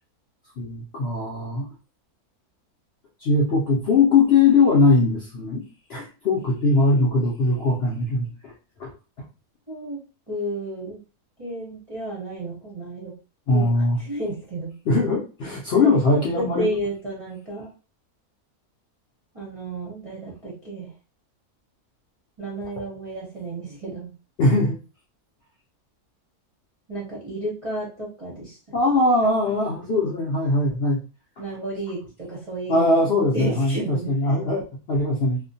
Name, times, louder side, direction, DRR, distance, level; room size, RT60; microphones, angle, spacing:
voice 1, 0.6-1.7 3.2-8.5 8.8-8.9 13.5-14.0 14.9-16.7 24.4-24.8 28.7-31.0 32.7-34.6 34.9-35.4, left 3 dB, 65° left, -4 dB, 0.6 m, -20 dB
voice 2, 9.7-10.0 10.3-11.0 11.4-13.1 13.5-13.7 14.1-14.7 15.8-17.7 19.3-20.9 22.4-24.1 26.9-28.6 31.4-33.0 33.3-34.4, right 1 dB, 35° right, -6 dB, 0.6 m, -32 dB
2.4 x 2.2 x 2.5 m, 0.33 s
omnidirectional pair, 1.6 m